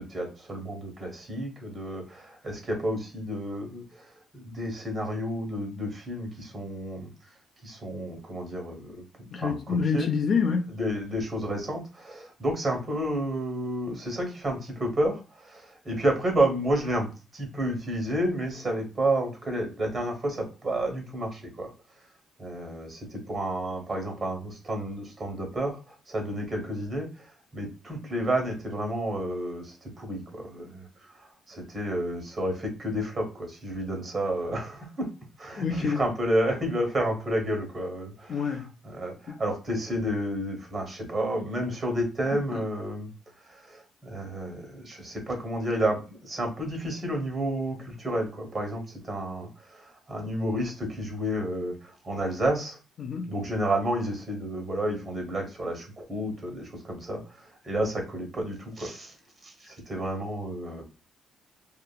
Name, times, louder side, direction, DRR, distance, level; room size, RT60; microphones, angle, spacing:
voice 1, 0.0-7.1 7.6-10.1 10.7-21.7 22.4-30.9 31.2-35.1 35.4-43.1 43.4-52.8 53.3-59.1 59.4-60.8, right 1 dB, 40° right, 1.2 m, -31 dB
voice 2, 9.3-10.7 35.6-36.0 38.3-38.7 39.3-39.4 53.0-53.3, left 5 dB, 55° left, 0.4 m, -27 dB
2.8 x 2.4 x 2.3 m
cardioid pair, 90°, 0 cm